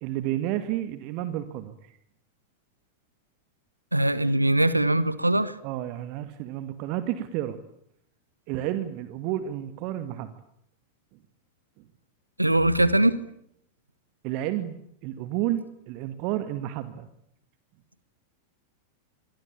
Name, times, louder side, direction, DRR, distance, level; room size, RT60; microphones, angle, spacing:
voice 1, 0.0-1.9 5.6-7.6 8.5-10.3 14.2-17.1, right 13 dB, 45° right, 11 dB, 2.2 m, -31 dB
voice 2, 3.9-5.5 12.4-13.2, right 1 dB, 85° right, 16 dB, 1.5 m, -21 dB
27.5 x 23.5 x 8.6 m, 0.73 s
figure-of-eight pair, 90°, 0 cm